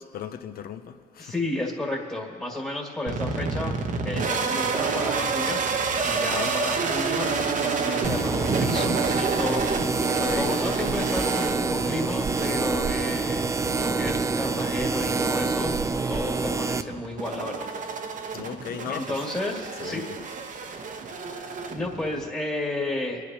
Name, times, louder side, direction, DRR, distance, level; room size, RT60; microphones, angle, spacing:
voice 1, 0.0-1.3 6.1-6.5 10.1-10.5 18.3-19.2 19.8-20.2, left 9 dB, 55° left, 9 dB, 0.7 m, -37 dB
voice 2, 1.2-3.8 4.0-5.8 6.0-13.5 13.7-15.7 16.1-17.7 18.9-20.1 20.4-20.9 21.7-23.2, left 2 dB, 15° left, -3 dB, 1.9 m, -32 dB
sound 1, 3.1-22.3, right 4 dB, 45° right, 1.0 m, -30 dB
sound 2, 8.0-16.8, right 4 dB, 15° right, 0.4 m, -26 dB
25.0 x 9.9 x 2.9 m, 2.3 s
cardioid pair, 100°, 18 cm